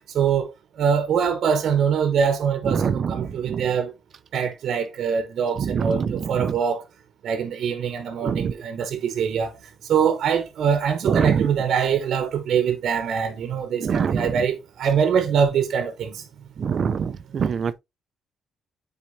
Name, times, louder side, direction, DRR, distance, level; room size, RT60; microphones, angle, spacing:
voice 1, 0.1-3.9 4.3-6.8 7.2-16.2 16.8-16.9, right 7 dB, 70° right, 1.0 m, -23 dB
voice 2, 2.7-3.7 5.6-6.5 8.2-8.5 11.0-11.5 13.8-14.4 16.6-17.7, right 6 dB, 50° right, 0.5 m, -24 dB
8.6 x 4.4 x 2.7 m
cardioid pair, 90°, 0 cm